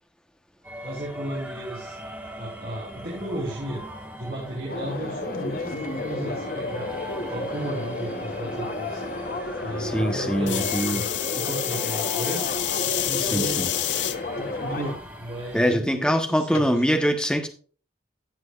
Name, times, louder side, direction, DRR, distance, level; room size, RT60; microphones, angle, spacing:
sound 1, 0.6-15.8, right 1 dB, 10° right, 2.0 m, -40 dB
voice 1, 0.8-2.0 2.4-3.8 4.2-6.9 7.3-9.0 9.6-12.6 13.0-13.7 14.3-16.7, right 1 dB, 55° right, -6 dB, 4.5 m, -34 dB
sound 2, 4.7-14.9, left 2 dB, 50° left, 1.1 m, -32 dB
voice 2, 9.8-11.0 13.3-13.7 15.5-17.5, equal, 5° left, 5 dB, 1.1 m, -23 dB
sound 3, 10.5-14.2 14.8-15.3 16.5-16.6, left 13 dB, 85° left, 0.6 m, -28 dB
16.5 x 6.1 x 2.5 m, 0.40 s
head